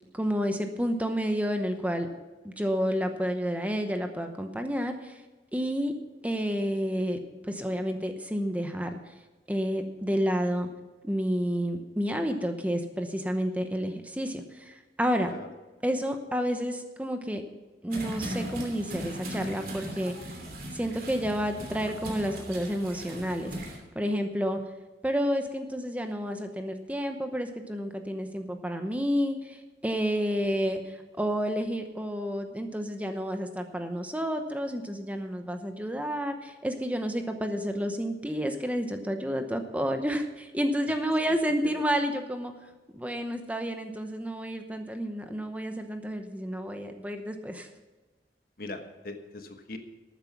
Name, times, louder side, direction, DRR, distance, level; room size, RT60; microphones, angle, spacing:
voice 1, 0.1-2.1 2.4-5.2 5.5-5.9 6.2-9.0 9.5-10.7 11.0-15.3 15.8-17.4 17.8-20.1 20.7-24.6 25.0-42.5 42.9-47.7, equal, 10° right, 6 dB, 0.8 m, -30 dB
voice 2, 15.3-15.6 40.9-41.8 48.6-49.8, left 2 dB, 55° left, 6 dB, 1.3 m, -42 dB
sound 1, 17.9-23.8, right 1 dB, 55° right, 2.9 m, -38 dB
13.0 x 9.2 x 6.0 m, 1.2 s
head